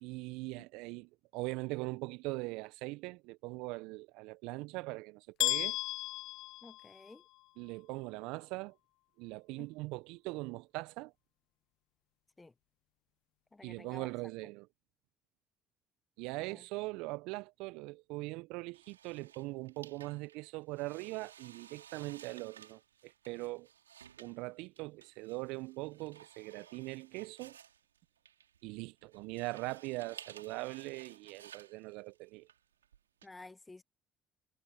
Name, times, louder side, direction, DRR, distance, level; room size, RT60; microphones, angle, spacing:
voice 1, 0.0-5.8 7.6-8.8 9.2-11.1 13.6-14.7 16.2-23.7 24.2-27.6 28.6-32.5, right 24 dB, 70° right, 1.2 m, -41 dB
sound 1, 5.4-7.4, left 18 dB, 65° left, 0.6 m, -35 dB
voice 2, 6.6-7.2 9.6-9.7 12.4-12.5 13.5-14.1 16.4-16.6 33.2-33.8, left 3 dB, 20° left, 1.2 m, -53 dB
sound 2, 18.7-33.3, right 9 dB, 85° right, 4.2 m, -56 dB
figure-of-eight pair, 50°, 0 cm